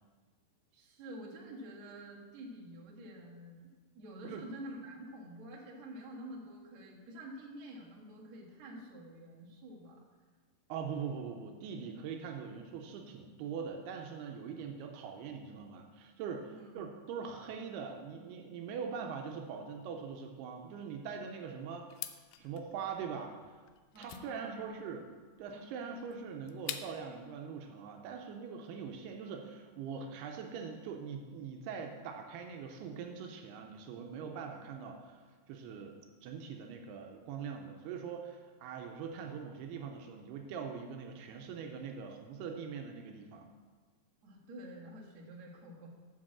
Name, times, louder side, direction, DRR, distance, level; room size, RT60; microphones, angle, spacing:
voice 1, 0.7-3.7 3.9-10.0 16.5-16.8 23.9-24.8 44.2-45.9, right 1 dB, 50° right, -4 dB, 2.4 m, -48 dB
voice 2, 10.7-21.9 22.4-23.4 24.0-25.1 25.4-35.2 35.5-43.5, right 6 dB, 85° right, 3 dB, 2.6 m, -42 dB
sound 1, 21.9-27.2, left 11 dB, 85° left, 2.7 m, -46 dB
7.6 x 6.1 x 7.3 m, 1.4 s
omnidirectional pair, 4.7 m